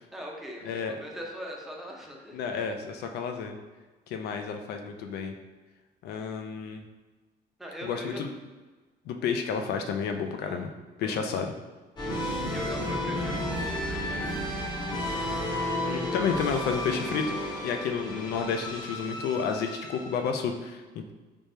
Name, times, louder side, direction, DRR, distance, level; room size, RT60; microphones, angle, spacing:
voice 1, 0.1-2.5 7.6-8.2 10.4-11.2 12.5-14.7, equal, ahead, -2 dB, 0.6 m, -41 dB
voice 2, 0.6-1.0 2.3-3.6 4.1-5.3 6.0-6.8 7.8-8.3 9.1-10.7 11.0-11.5 15.8-21.1, left 6 dB, 75° left, 5 dB, 0.4 m, -31 dB
sound 1, 12.0-20.4, left 1 dB, 25° left, 0.9 m, -32 dB
3.4 x 3.2 x 2.7 m, 1.3 s
cardioid pair, 110°, 17 cm